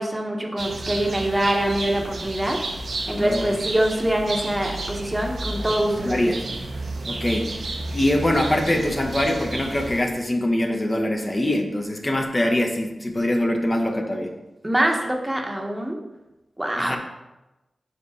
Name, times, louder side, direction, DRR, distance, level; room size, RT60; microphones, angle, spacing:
voice 1, 0.0-2.6 3.1-6.4 14.6-16.0 16.6-17.0, right 1 dB, 20° right, 1 dB, 1.0 m, -24 dB
sound 1, 0.6-10.0, right 2 dB, 75° right, 0.7 m, -32 dB
voice 2, 3.2-3.6 6.0-6.5 7.1-7.5 7.9-14.3 16.8-17.0, left 1 dB, 30° left, 2 dB, 0.9 m, -23 dB
4.8 x 4.7 x 4.2 m, 1.0 s
cardioid pair, 40°, 0 cm